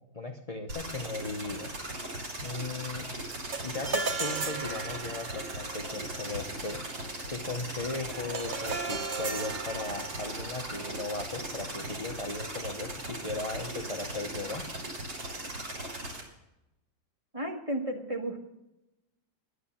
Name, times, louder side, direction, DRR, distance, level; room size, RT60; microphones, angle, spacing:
voice 1, 0.1-1.7 2.4-3.0 3.6-6.8 7.3-14.6, left 3 dB, 30° left, 3 dB, 0.7 m, -37 dB
sound 1, 0.7-16.2, right 1 dB, 70° right, 4.1 m, -39 dB
sound 2, 3.3-12.8, right 4 dB, 50° right, 0.6 m, -38 dB
voice 2, 17.3-18.5, right 1 dB, 20° right, 1 dB, 1.8 m, -33 dB
11.0 x 10.5 x 7.1 m, 0.89 s
omnidirectional pair, 2.0 m